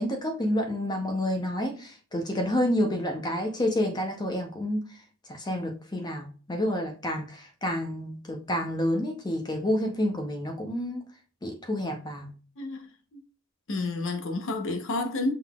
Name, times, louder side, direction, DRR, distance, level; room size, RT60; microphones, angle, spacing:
voice 1, 0.0-5.0 5.3-11.0 11.4-12.3, left 1 dB, 20° left, 0.7 m, -29 dB
voice 2, 12.6-12.9 13.1-13.2 13.7-15.3, left 2 dB, 65° left, 0.9 m, -30 dB
5.7 x 3.9 x 2.3 m
head